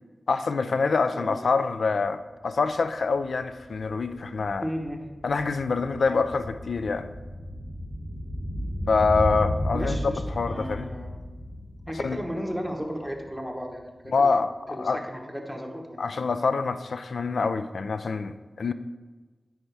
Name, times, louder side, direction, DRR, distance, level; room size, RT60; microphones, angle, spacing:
voice 1, 0.3-4.6 5.2-7.1 8.9-10.9 12.0-12.2 14.1-15.0 16.0-18.7, left 4 dB, 80° left, 11 dB, 0.3 m, -26 dB
voice 2, 1.1-1.6 4.6-5.0 6.1-6.2 9.7-11.1 11.9-14.3 14.7-16.0, equal, 5° left, 1 dB, 1.1 m, -34 dB
sound 1, 2.7-2.8 3.0-13.4 13.6-13.7, equal, 40° left, 1.6 m, -34 dB
9.5 x 4.6 x 3.4 m, 1.3 s
cardioid pair, 60°, 0 cm